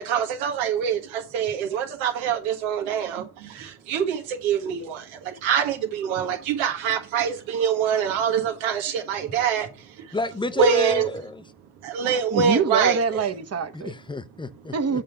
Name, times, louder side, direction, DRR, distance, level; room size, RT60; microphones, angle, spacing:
voice 1, 0.0-9.7 10.0-10.2 10.6-11.1 11.8-13.0, right 7 dB, 85° right, 1.7 m, -25 dB
voice 2, 10.1-11.4 13.7-14.7, left 2 dB, 10° left, 0.7 m, -29 dB
voice 3, 12.2-13.9 14.7-15.0, right 5 dB, 30° right, 1.1 m, -25 dB
7.8 x 3.7 x 5.7 m
cardioid pair, 90°, 46 cm